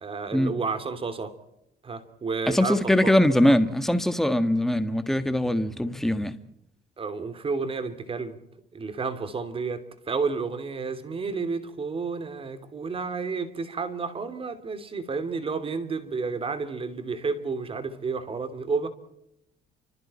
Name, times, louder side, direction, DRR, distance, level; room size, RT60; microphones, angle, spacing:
voice 1, 0.0-1.3 1.8-3.4 7.0-8.4 8.7-18.9, right 4 dB, 35° right, 3.0 m, -31 dB
voice 2, 2.5-6.4, left 1 dB, ahead, 1.6 m, -22 dB
29.5 x 26.0 x 4.4 m
cardioid pair, 110°, 17 cm